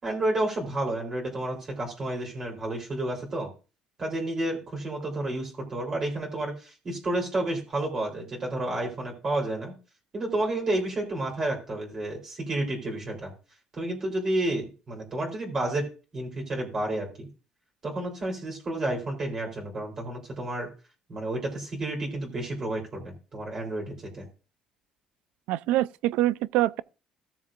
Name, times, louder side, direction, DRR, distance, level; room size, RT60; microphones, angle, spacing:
voice 1, 0.0-3.5 4.0-9.7 10.1-13.3 13.7-17.3 17.8-20.7 21.1-24.2, right 1 dB, 25° right, 3.4 m, -31 dB
voice 2, 25.5-26.8, right 15 dB, 90° right, 0.4 m, -25 dB
16.0 x 7.2 x 2.5 m
cardioid pair, 175°, 2 cm